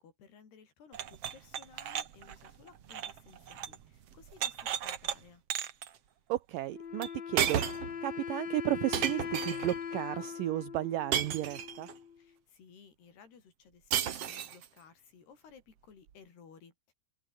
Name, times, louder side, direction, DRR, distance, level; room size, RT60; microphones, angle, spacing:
voice 1, 0.0-5.4 12.2-16.9, left 6 dB, 80° left, 6.8 m, -58 dB
sound 1, 0.9-3.8 4.1-5.2 5.5-5.9 7.0-7.1 7.4-7.9 8.9-9.8 11.1-11.9 13.9-14.7, right 9 dB, 55° right, 1.8 m, -34 dB
voice 2, 6.3-7.6 8.0-11.9, right 15 dB, 80° right, 2.0 m, -33 dB
Wind instrument woodwind instrument, 6.7-12.2, left 7 dB, 60° left, 5.0 m, -41 dB
open air
omnidirectional pair, 4.6 m